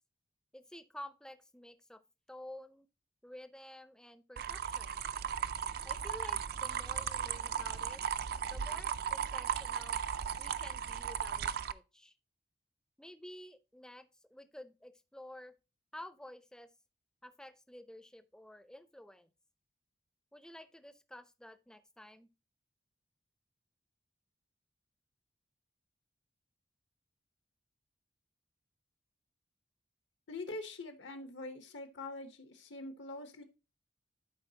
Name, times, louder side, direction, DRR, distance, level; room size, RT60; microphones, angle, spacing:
voice 1, 0.5-2.0 2.3-2.9 3.2-5.0 5.8-8.0 8.5-10.0 10.4-12.1 13.0-15.5 15.9-16.7 17.2-19.3 20.3-22.3, left 1 dB, 5° left, 0.4 m, -51 dB
sound 1, 4.4-11.7, right 8 dB, 55° right, 0.4 m, -36 dB
voice 2, 30.3-33.4, left 2 dB, 80° left, 1.0 m, -44 dB
11.5 x 4.8 x 2.8 m
head